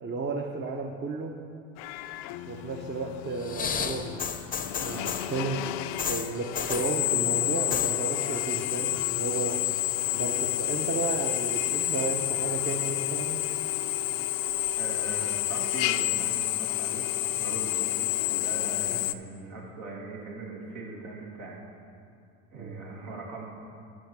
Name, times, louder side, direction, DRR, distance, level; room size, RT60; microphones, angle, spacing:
voice 1, 0.0-1.4 2.5-4.3 4.8-9.7 10.1-13.5 18.9-19.1 22.5-22.8, right 4 dB, 30° right, 3 dB, 0.8 m, -33 dB
Drill, 1.8-19.1, left 15 dB, 75° left, 0.5 m, -30 dB
sound 1, 3.4-5.4 6.0-7.0 7.5-8.0 8.2-8.7 9.1-9.9 10.6-10.7, left 7 dB, 25° left, 0.6 m, -33 dB
voice 2, 4.8-5.1 14.7-17.1 17.4-17.8 18.3-21.6 22.5-23.5, right 3 dB, 75° right, -2 dB, 2.5 m, -40 dB
11.5 x 5.9 x 6.1 m, 2.4 s
supercardioid pair, 90°, 33 cm